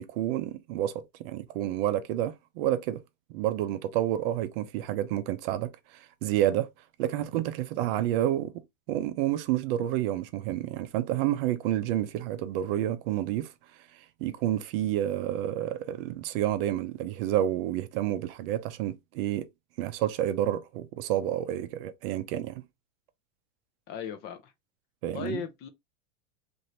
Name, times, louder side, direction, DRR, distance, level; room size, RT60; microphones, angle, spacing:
voice 1, 0.0-3.0 3.3-6.7 7.0-13.5 13.9-19.5 19.8-22.6 25.0-25.4, right 12 dB, 50° right, 0.6 m, -29 dB
voice 2, 23.9-24.5 25.1-25.7, left 7 dB, 30° left, 0.4 m, -36 dB
2.8 x 2.6 x 3.0 m
supercardioid pair, 145°, 37 cm